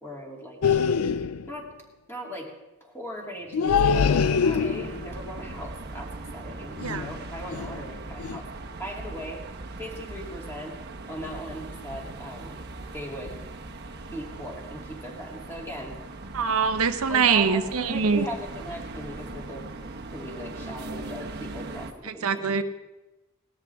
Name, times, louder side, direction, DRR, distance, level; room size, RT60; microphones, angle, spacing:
voice 1, 0.0-1.1 1.5-1.7 2.1-2.5 2.8-8.5 8.8-9.4 9.8-10.8 11.1-12.6 12.9-13.4 14.1-16.0 17.1-19.7 20.1-22.6, equal, 10° left, -2 dB, 2.7 m, -39 dB
sound 1, 0.6-1.5 3.5-5.1 6.8-7.1 7.5-7.8 8.2-8.4, left 6 dB, 80° left, 0.4 m, -24 dB
sound 2, 3.9-21.9, right 2 dB, 50° right, 1.0 m, -40 dB
voice 2, 16.3-18.3 22.1-22.6, right 5 dB, 80° right, 9 dB, 0.8 m, -23 dB
18.5 x 13.0 x 3.5 m, 1.1 s
head